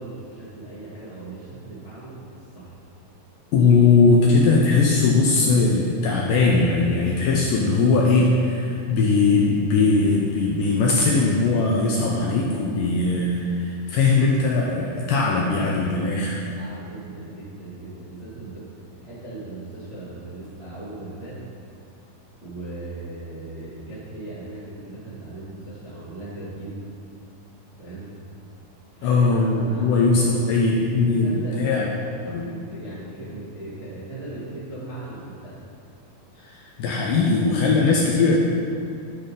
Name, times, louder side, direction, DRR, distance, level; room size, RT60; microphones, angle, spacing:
voice 1, 0.0-2.8 16.5-21.4 22.4-26.9 27.8-28.1 28.9-30.3 31.0-32.0 32.4-35.6, right 2 dB, 65° right, -11 dB, 0.6 m, -38 dB
voice 2, 3.5-16.5 29.0-31.9 32.3-32.5 36.4-38.4, left 3 dB, 80° left, -2 dB, 2.0 m, -20 dB
11.5 x 3.9 x 5.2 m, 2.4 s
omnidirectional pair, 4.4 m